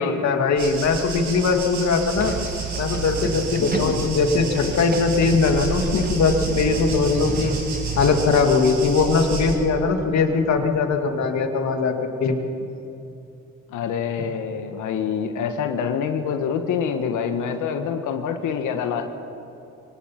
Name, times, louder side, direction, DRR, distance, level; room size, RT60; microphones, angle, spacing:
voice 1, 0.0-2.4 2.8-7.6 8.0-12.4, left 4 dB, 65° left, 5 dB, 2.3 m, -20 dB
sound 1, 0.6-9.5, right 3 dB, 75° right, 5.7 m, -32 dB
sound 2, 2.2-8.2, right 5 dB, 30° right, 1.4 m, -30 dB
voice 2, 13.7-19.0, left 7 dB, 85° left, 6 dB, 1.4 m, -26 dB
23.5 x 19.0 x 5.8 m, 2.8 s
cardioid pair, 90°, 30 cm